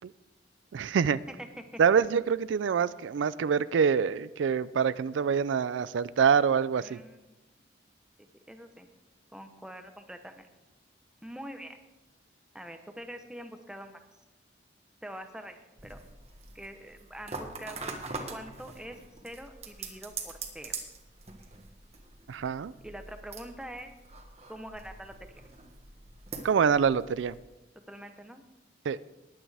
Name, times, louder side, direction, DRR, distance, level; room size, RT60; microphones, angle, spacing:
voice 1, 0.7-1.2 1.8-7.0 22.3-22.7 26.4-27.3 28.9-29.0, right 6 dB, 90° right, 0.4 m, -25 dB
voice 2, 1.3-1.6 6.8-7.5 8.5-8.9 9.3-10.5 11.2-11.8 12.5-14.0 15.0-15.6 15.8-16.0 16.5-18.0 18.3-20.8 22.8-23.9 24.5-25.4 27.9-28.4, right 1 dB, 5° right, 0.8 m, -44 dB
sound 1, 15.8-27.4, right 4 dB, 35° right, 1.4 m, -44 dB
20.0 x 8.6 x 3.4 m
head